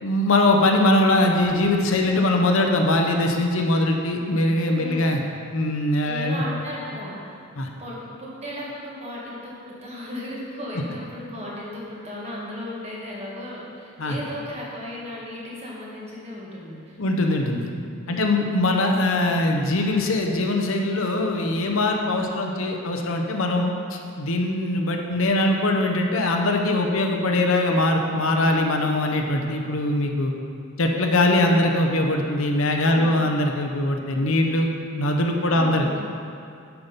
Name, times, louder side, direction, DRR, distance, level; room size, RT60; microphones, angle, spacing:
voice 1, 0.0-5.2 5.5-6.4 7.6-7.7 14.0-14.2 17.0-17.7 18.1-30.3 30.8-35.9, left 1 dB, 65° left, 3 dB, 0.7 m, -22 dB
voice 2, 4.8-5.1 6.0-7.3 7.8-17.0 18.1-18.4 32.9-33.2 35.5-36.0, left 1 dB, 30° right, -5 dB, 1.7 m, -35 dB
8.0 x 5.9 x 5.2 m, 2.4 s
head